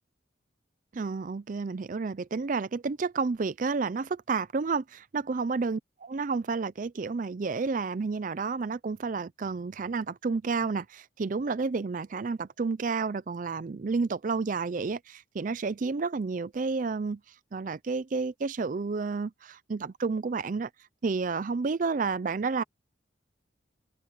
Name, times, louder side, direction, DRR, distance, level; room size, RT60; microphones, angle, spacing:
voice 1, 0.9-5.8 6.1-17.2 17.5-20.7 21.0-22.6, right 4 dB, 45° right, 0.4 m, -30 dB
head